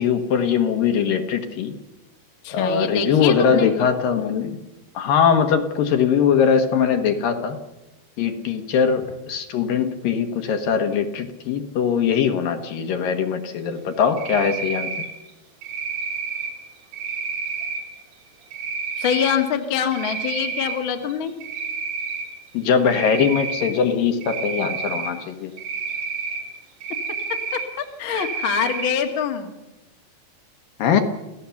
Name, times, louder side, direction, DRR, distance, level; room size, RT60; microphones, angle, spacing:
voice 1, 0.0-1.7 2.5-4.6 4.9-7.6 8.2-14.9 22.5-25.5 30.8-31.0, left 7 dB, 65° left, 6 dB, 2.7 m, -21 dB
voice 2, 2.4-3.7 19.0-21.3 27.3-29.5, left 7 dB, 45° left, 4 dB, 1.7 m, -25 dB
Cricket, 14.2-15.1 15.6-16.5 16.9-17.8 18.5-19.3 19.8-20.7 21.1-22.3 22.9-23.7 24.2-25.1 25.6-26.4 26.8-27.6 28.1-28.9, right 5 dB, 90° right, 5.7 m, -29 dB
28.5 x 16.0 x 7.1 m, 1.0 s
omnidirectional pair, 4.8 m